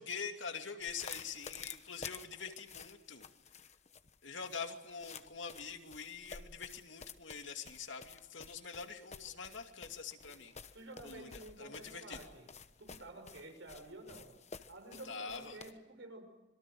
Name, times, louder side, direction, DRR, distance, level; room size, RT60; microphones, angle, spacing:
voice 1, 0.0-3.2 4.2-10.5 11.0-12.3 15.0-15.6, left 6 dB, 75° left, 5 dB, 2.6 m, -45 dB
sound 1, 0.8-15.7, left 6 dB, 40° left, 1.2 m, -51 dB
voice 2, 10.7-12.5 12.8-14.3 14.7-16.2, right 2 dB, 70° right, 6 dB, 6.0 m, -51 dB
26.5 x 22.5 x 7.8 m, 1.0 s
head